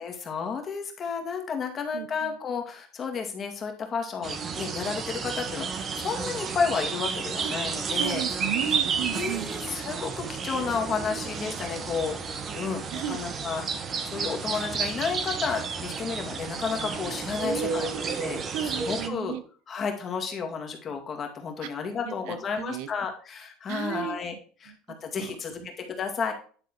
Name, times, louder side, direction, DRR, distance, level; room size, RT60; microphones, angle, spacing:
voice 1, 0.0-8.2 9.1-17.9 18.2-19.4 19.7-24.3 24.6-24.7 25.0-26.3, left 5 dB, 30° left, 3 dB, 2.1 m, -32 dB
voice 2, 1.9-2.4 7.4-7.5 8.0-9.5 12.9-13.3 17.4-18.2 18.5-19.4 21.6-21.7 22.0-22.9 23.7-24.2 24.7-25.7, right 10 dB, 70° right, 12 dB, 0.9 m, -35 dB
sound 1, 4.2-19.1, right 5 dB, 30° right, 1.1 m, -31 dB
10.5 x 3.8 x 4.4 m, 0.41 s
supercardioid pair, 115°, 0 cm